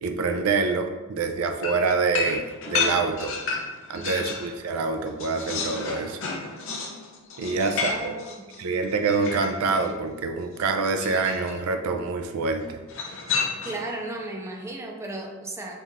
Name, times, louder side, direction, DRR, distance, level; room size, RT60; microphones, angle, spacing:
voice 1, 0.0-3.3 3.9-6.2 7.4-8.2 8.6-12.8, right 4 dB, 80° right, 5 dB, 0.4 m, -26 dB
sound 1, 1.6-4.5 4.9-9.9 11.0-11.6 12.9-13.9, left 5 dB, 65° left, 0.6 m, -31 dB
voice 2, 4.0-4.4 7.5-8.6 13.6-15.8, right 2 dB, 15° right, 0 dB, 0.5 m, -36 dB
3.5 x 2.4 x 4.1 m, 1.2 s
head